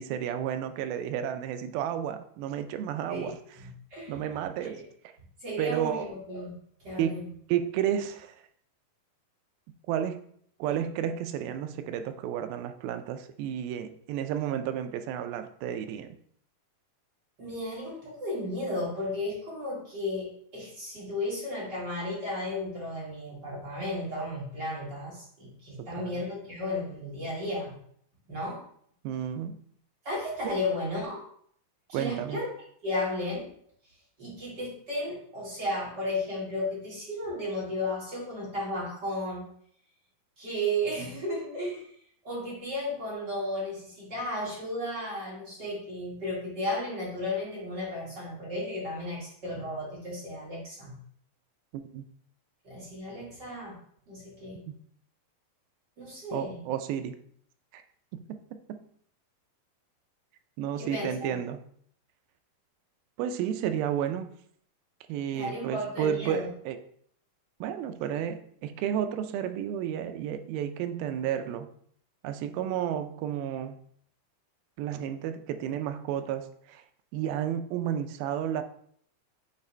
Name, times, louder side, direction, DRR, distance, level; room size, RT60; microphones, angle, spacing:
voice 1, 0.0-3.6 4.1-4.8 5.6-6.1 7.0-7.2 7.5-8.4 9.9-10.2 10.6-16.2 25.8-26.2 29.0-29.6 30.4-30.6 31.9-32.4 51.7-52.1 54.7-54.8 56.3-57.2 57.7-57.8 58.1-58.9 60.6-61.6 63.2-64.3 65.1-66.8 67.6-71.7 72.2-73.8 74.8-76.8 77.1-78.6, right 9 dB, 85° right, 9 dB, 2.3 m, -32 dB
voice 2, 3.1-4.2 4.6-4.8 5.4-6.5 6.8-7.2 17.4-27.8 28.3-28.6 30.0-31.2 31.9-32.5 32.8-33.5 34.2-39.5 40.4-41.9 42.2-51.0 52.6-53.8 54.1-54.7 56.0-56.6 60.8-61.4 65.3-66.5, left 1 dB, 35° right, -6 dB, 2.2 m, -34 dB
8.3 x 3.8 x 3.2 m, 0.63 s
omnidirectional pair, 4.3 m